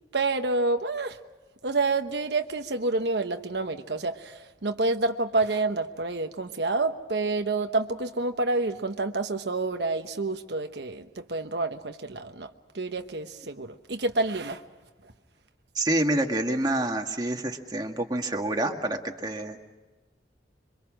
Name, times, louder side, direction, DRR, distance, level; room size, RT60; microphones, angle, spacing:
voice 1, 0.1-1.2 1.6-14.6 15.0-15.1, right 3 dB, 75° right, 6 dB, 1.1 m, -28 dB
voice 2, 15.8-19.6, right 1 dB, 25° right, 3 dB, 1.9 m, -27 dB
27.0 x 24.5 x 6.3 m, 1.2 s
head